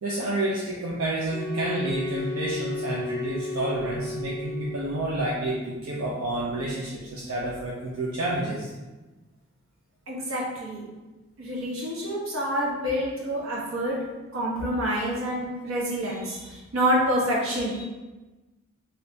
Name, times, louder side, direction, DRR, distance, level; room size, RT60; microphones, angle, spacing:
voice 1, 0.0-8.7, right 1 dB, 90° right, -5 dB, 0.5 m, -29 dB
sound 1, 1.3-5.2, left 2 dB, 45° left, 0.4 m, -34 dB
voice 2, 10.1-10.9 11.4-14.0 14.3-17.8, equal, 70° right, -4 dB, 0.9 m, -27 dB
3.3 x 2.7 x 2.6 m, 1.2 s
head